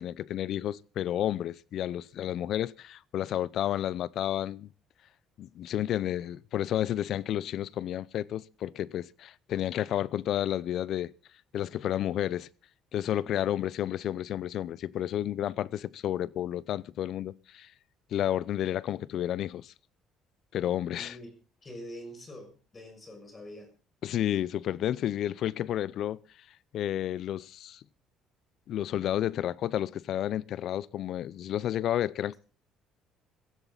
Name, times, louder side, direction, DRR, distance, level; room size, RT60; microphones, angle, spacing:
voice 1, 0.0-4.7 5.4-11.1 11.5-12.5 12.9-17.7 18.1-19.7 20.5-21.2 24.0-26.2 26.7-27.8 28.7-32.3, left 11 dB, 60° left, 0.7 m, -31 dB
voice 2, 20.9-21.3 21.6-23.7, equal, 25° left, 6.4 m, -45 dB
15.5 x 15.5 x 4.0 m
cardioid pair, 115°, 0 cm